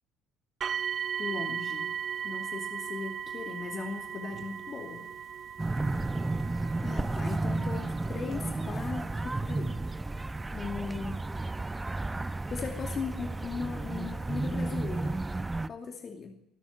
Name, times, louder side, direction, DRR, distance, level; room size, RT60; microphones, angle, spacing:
sound 1, 0.6-13.5 14.3-14.4 15.0-15.1, right 8 dB, 40° right, 0.9 m, -39 dB
voice 1, 1.2-1.9 2.2-5.1 6.8-9.8 10.5-11.3 12.5-15.2 15.7-16.5, left 5 dB, 35° left, 3 dB, 2.5 m, -38 dB
sound 2, 5.6-15.7, right 2 dB, 15° right, 1.0 m, -32 dB
25.5 x 13.0 x 9.7 m, 0.81 s
figure-of-eight pair, 55°, 0 cm